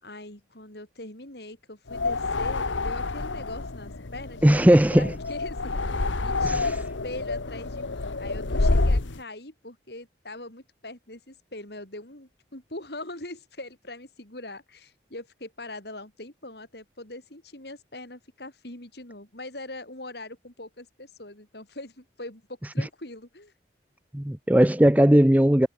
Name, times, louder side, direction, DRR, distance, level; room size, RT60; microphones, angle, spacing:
voice 1, 0.0-23.5, left 2 dB, 60° left, 4.3 m, -42 dB
sound 1, 1.9-9.2, left 3 dB, 90° left, 1.3 m, -28 dB
voice 2, 4.4-5.1 6.4-6.7 24.1-25.7, equal, 10° right, 0.6 m, -18 dB
head